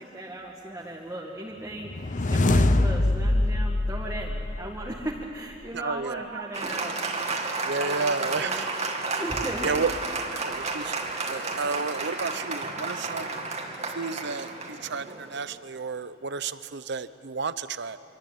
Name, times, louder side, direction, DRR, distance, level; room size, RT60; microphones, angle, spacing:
voice 1, 0.0-7.3 7.8-8.6 9.2-9.7 12.7-12.9, right 1 dB, 15° right, -2 dB, 2.0 m, -37 dB
sound 1, 1.8-5.1, left 2 dB, 40° left, 0.8 m, -24 dB
voice 2, 5.7-6.5 7.7-8.7 9.6-9.9 10.3-13.4 13.9-18.0, right 4 dB, 60° right, 14 dB, 0.8 m, -32 dB
Applause, 6.5-15.5, right 3 dB, 35° right, 2.4 m, -32 dB
26.0 x 24.0 x 9.0 m, 2.9 s
head